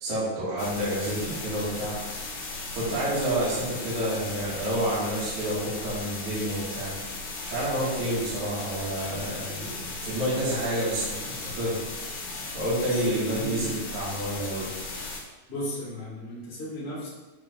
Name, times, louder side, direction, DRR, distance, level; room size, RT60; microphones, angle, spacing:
voice 1, 0.0-2.0 2.7-6.9 7.4-11.8 12.5-14.7, right 1 dB, 60° right, -9 dB, 3.0 m, -29 dB
sound 1, 0.6-15.2, left 3 dB, 60° left, 1.5 m, -37 dB
voice 2, 12.9-13.7 15.5-17.1, left 1 dB, 25° left, -5 dB, 1.4 m, -35 dB
7.5 x 3.8 x 5.0 m, 1.2 s
omnidirectional pair, 4.1 m